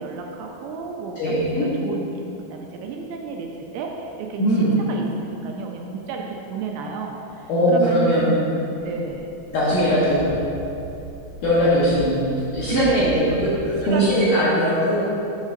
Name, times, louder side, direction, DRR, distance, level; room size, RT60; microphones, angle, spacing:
voice 1, 0.0-4.4 4.9-9.3 12.7-14.6, right 4 dB, 80° right, 1 dB, 2.5 m, -31 dB
voice 2, 1.2-1.7 4.4-4.8 7.5-8.3 9.5-10.3 11.4-12.3 12.5-13.4 13.8-15.0, equal, 75° left, -10 dB, 2.0 m, -20 dB
sound 1, 8.9-14.1, right 3 dB, 65° right, 1.5 m, -38 dB
7.3 x 3.6 x 6.4 m, 2.9 s
omnidirectional pair, 5.2 m